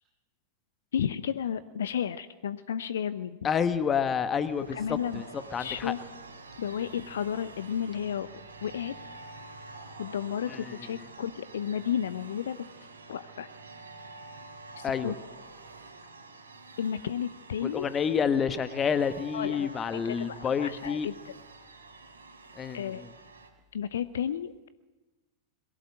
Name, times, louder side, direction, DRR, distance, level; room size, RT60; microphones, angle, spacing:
voice 1, 0.9-3.4 4.7-5.2 5.6-6.0 6.6-8.3 8.6-8.9 10.0-12.6 13.1-13.5 14.8-15.2 16.8-17.9 19.3-21.3 22.7-23.0 23.7-24.7, left 8 dB, 65° left, 15 dB, 0.7 m, -32 dB
voice 2, 3.4-4.8 5.1-5.9 10.5-10.7 14.8-15.1 17.6-21.1 22.6-23.1, left 7 dB, 25° left, 12 dB, 1.3 m, -29 dB
sound 1, 4.1-23.5, right 3 dB, 75° right, 3.4 m, -48 dB
22.0 x 16.5 x 7.8 m, 1.1 s
figure-of-eight pair, 90°, 0 cm